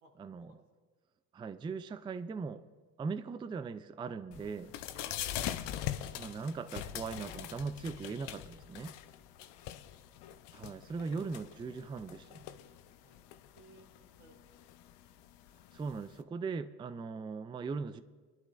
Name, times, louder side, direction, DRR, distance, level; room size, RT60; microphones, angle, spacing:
voice 1, 0.2-0.5 1.3-2.6 3.0-4.7 6.2-8.9 10.5-12.4 15.7-18.0, right 4 dB, 10° right, 13 dB, 0.3 m, -39 dB
sound 1, 4.3-16.2, left 12 dB, 60° left, 0.8 m, -43 dB
voice 2, 4.9-5.5 9.4-9.9 10.8-11.2 13.0-13.2 13.5-14.5, right 2 dB, 90° right, 2 dB, 2.2 m, -61 dB
22.0 x 11.5 x 2.5 m, 1.4 s
hypercardioid pair, 70°, 46 cm